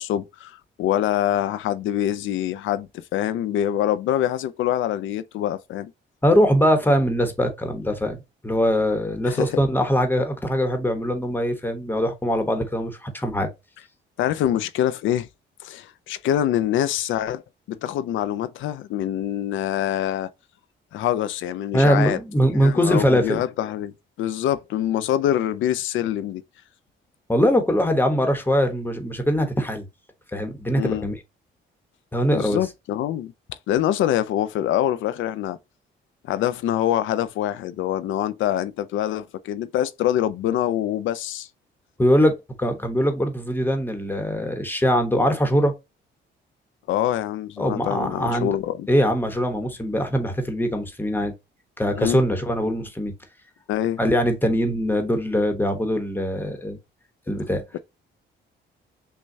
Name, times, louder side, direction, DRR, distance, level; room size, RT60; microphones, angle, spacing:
voice 1, 0.0-5.9 9.3-9.6 14.2-15.3 15.6-17.4 17.7-20.3 20.9-22.2 22.5-23.9 24.2-26.4 30.7-31.1 32.3-35.6 36.3-41.5 46.9-48.9 51.9-52.2 53.7-54.0 57.7-57.8, left 11 dB, 75° left, 0.5 m, -25 dB
voice 2, 6.2-13.5 21.7-23.4 27.3-29.9 30.3-31.2 32.1-32.6 42.0-45.7 47.6-48.6 48.9-51.3 51.8-53.1 54.0-56.8 57.3-57.6, equal, 10° left, 1.0 m, -22 dB
6.3 x 2.2 x 2.7 m
cardioid pair, 90°, 20 cm